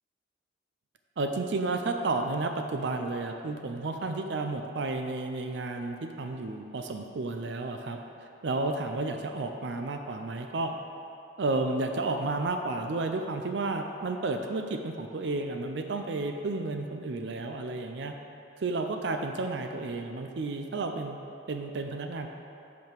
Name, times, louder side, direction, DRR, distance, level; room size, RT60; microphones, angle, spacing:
voice 1, 1.2-10.7 11.4-18.1 18.6-21.2 21.5-22.3, right 3 dB, 70° right, 5 dB, 0.5 m, -32 dB
5.6 x 5.2 x 5.9 m, 2.7 s
head